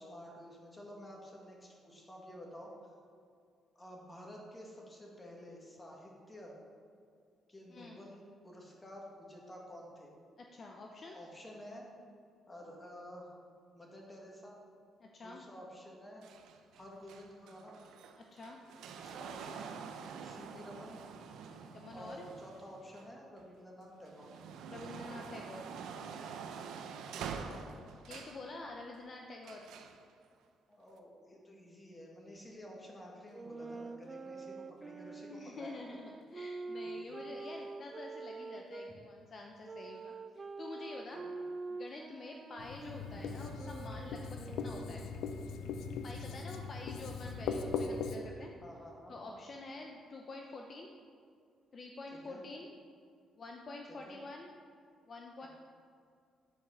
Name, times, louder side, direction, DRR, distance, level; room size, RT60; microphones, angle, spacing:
voice 1, 0.0-2.9 3.8-6.6 7.5-10.1 11.1-11.9 12.5-13.4 13.7-14.6 15.2-16.3 16.7-17.8 18.9-19.8 20.2-21.0 21.9-24.3 27.1-27.6 30.7-35.7 41.1-41.4 48.6-49.4 52.1-52.4 53.9-54.2 55.4-55.5, equal, 20° left, -2 dB, 1.9 m, -51 dB
voice 2, 7.7-8.0 10.4-11.2 15.0-15.4 18.2-18.6 21.5-22.2 24.7-25.7 28.0-29.7 35.3-41.2 41.7-45.1 46.0-48.5 49.1-50.9 51.7-52.7 53.4-54.5 55.1-55.5, left 3 dB, 45° left, 1 dB, 0.7 m, -48 dB
sound 1, 16.2-23.4 23.9-28.5 29.4-30.0 30.9-31.0, right 6 dB, 85° right, 0.6 m, -46 dB
sound 2, 33.3-38.9 39.6-45.2, right 3 dB, 30° right, 0.3 m, -46 dB
Writing, 42.6-48.2, left 5 dB, 85° left, 0.5 m, -39 dB
9.2 x 4.8 x 5.7 m, 2.3 s
cardioid pair, 90°, 0 cm